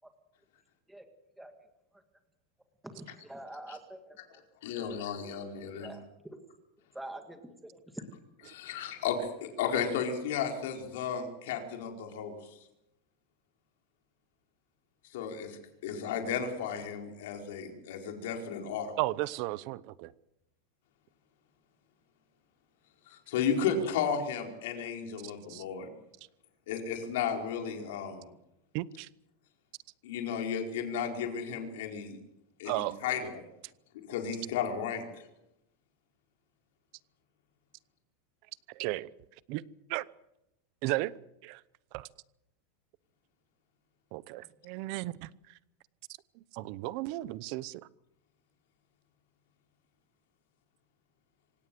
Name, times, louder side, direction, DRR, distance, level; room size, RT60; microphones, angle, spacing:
voice 1, 2.8-4.4 4.7-4.9 5.8-6.4 6.9-8.0, right 1 dB, 5° right, 1.8 m, -46 dB
voice 2, 4.6-5.9 8.5-12.3 15.1-18.9 23.1-25.9 26.7-28.3 30.0-32.2 32.6-33.4 34.0-35.1, left 7 dB, 65° left, 4.8 m, -34 dB
voice 3, 19.0-20.1 25.5-25.6 28.7-29.1 32.7-33.0 38.7-39.1 39.5-39.6 39.9-40.1 40.8-41.1 41.4-41.6 41.9-42.1 44.1-45.3 46.5-47.8, right 19 dB, 40° right, 0.8 m, -34 dB
26.0 x 17.5 x 7.8 m
supercardioid pair, 180°, 0 cm